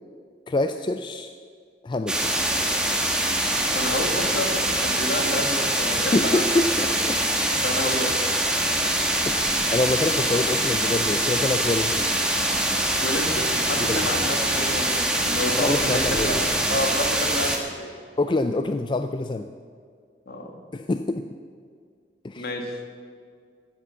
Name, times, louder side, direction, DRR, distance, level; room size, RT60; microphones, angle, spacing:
voice 1, 0.5-1.3 1.8-2.3 6.0-7.2 9.3-12.1 13.9-14.1 15.5-16.4 16.7-16.8 18.2-19.5 20.7-21.2 22.2-22.5, left 2 dB, 25° left, 8 dB, 0.4 m, -26 dB
sound 1, 2.1-17.6, right 1 dB, 5° right, 1.5 m, -24 dB
voice 2, 3.7-6.4 6.8-6.9 7.6-8.1 13.0-17.9 20.3-20.5 22.4-22.8, left 1 dB, 60° left, 3 dB, 1.8 m, -29 dB
14.5 x 8.6 x 6.9 m, 2.1 s
head